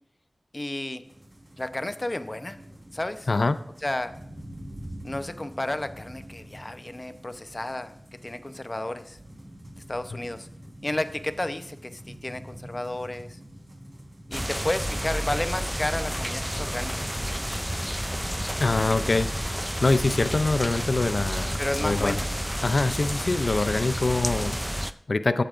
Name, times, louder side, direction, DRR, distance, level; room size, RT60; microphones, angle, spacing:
voice 1, 0.5-1.0 1.6-2.6 2.9-3.3 3.8-4.1 5.0-7.9 8.2-9.2 9.9-10.5 10.8-13.4 14.3-17.1 21.6-22.3, left 1 dB, 35° left, 10 dB, 0.8 m, -32 dB
sound 1, 1.0-17.8, equal, 35° right, 3.8 m, -46 dB
sound 2, 14.3-24.9, equal, 5° right, 0.4 m, -30 dB
voice 2, 18.6-22.1 22.6-25.4, left 3 dB, 70° left, 12 dB, 0.4 m, -25 dB
16.5 x 8.6 x 2.5 m, 0.74 s
wide cardioid pair, 45°, 0 cm